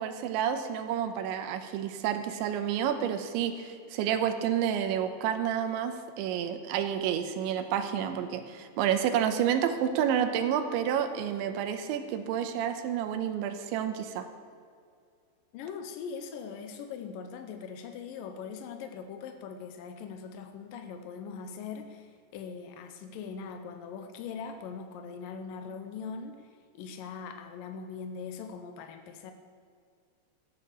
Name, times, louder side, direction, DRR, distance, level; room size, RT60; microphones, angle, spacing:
voice 1, 0.0-14.3, right 9 dB, 85° right, 7 dB, 3.3 m, -29 dB
voice 2, 15.5-29.3, left 6 dB, 85° left, 7 dB, 1.9 m, -41 dB
13.5 x 11.0 x 6.7 m, 2.2 s
omnidirectional pair, 5.2 m